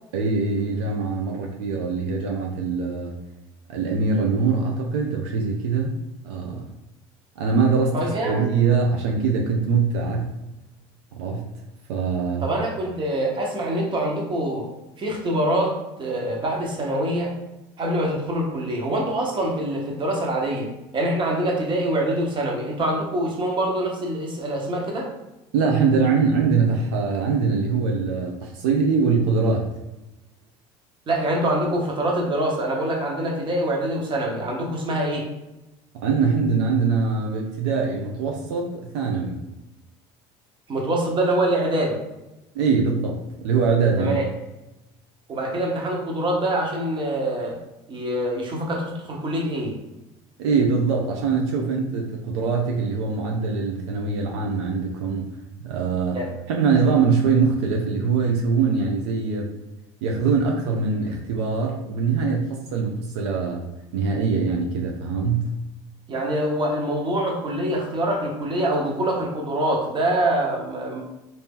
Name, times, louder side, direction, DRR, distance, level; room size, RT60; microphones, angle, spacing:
voice 1, 0.1-3.1 3.7-5.9 6.2-6.6 7.4-8.0 8.2-10.3 11.2-11.5 11.9-12.4 25.5-29.6 36.0-39.4 42.5-44.2 50.4-55.2 55.6-56.2 56.5-59.5 60.0-63.6 63.9-65.5, right 5 dB, 85° right, 0 dB, 0.6 m, -23 dB
voice 2, 7.9-8.4 12.4-14.7 15.0-17.3 17.8-25.1 31.1-35.3 40.7-42.0 44.0-44.3 45.3-47.6 47.9-49.7 56.1-56.3 66.1-71.0, right 1 dB, 35° right, 0 dB, 1.1 m, -25 dB
2.8 x 2.7 x 3.6 m, 0.97 s
supercardioid pair, 90°, 14 cm